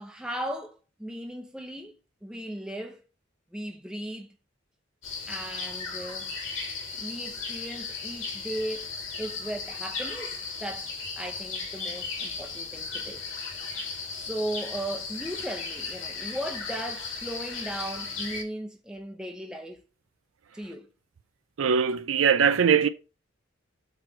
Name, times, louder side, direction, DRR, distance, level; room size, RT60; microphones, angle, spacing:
voice 1, 0.0-1.9 2.2-3.0 3.5-4.3 5.3-6.3 7.0-13.2 14.1-19.8 20.5-20.9, right 1 dB, 5° right, 0.7 m, -37 dB
sound 1, 5.0-18.4, left 4 dB, 85° left, 2.9 m, -36 dB
voice 2, 21.6-22.9, right 7 dB, 90° right, 0.5 m, -21 dB
7.8 x 3.2 x 4.8 m
head